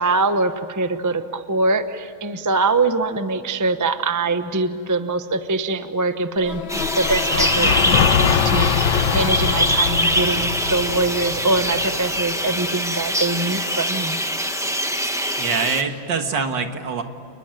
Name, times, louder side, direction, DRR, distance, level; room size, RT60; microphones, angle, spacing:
voice 1, 0.0-14.2, right 3 dB, 20° right, 9 dB, 0.5 m, -23 dB
sound 1, 6.4-12.6, left 8 dB, 75° left, 1.8 m, -23 dB
sound 2, 6.7-15.8, equal, ahead, 1.2 m, -23 dB
voice 2, 15.4-17.0, right 5 dB, 60° right, 6 dB, 2.3 m, -24 dB
29.5 x 21.0 x 9.1 m, 2.7 s
omnidirectional pair, 2.2 m